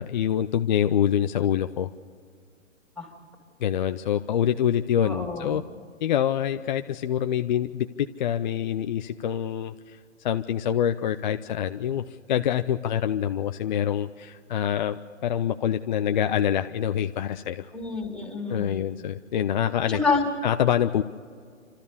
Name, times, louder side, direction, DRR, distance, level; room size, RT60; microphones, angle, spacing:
voice 1, 0.0-1.9 3.6-5.6 6.0-7.9 8.2-10.0 10.2-17.7 18.5-20.0 20.4-21.0, left 10 dB, 35° left, 8 dB, 0.5 m, -25 dB
voice 2, 5.0-5.6 17.7-18.8 19.9-20.2, left 4 dB, ahead, 1 dB, 2.8 m, -28 dB
29.0 x 13.0 x 7.0 m, 2.1 s
hypercardioid pair, 145°, 40 cm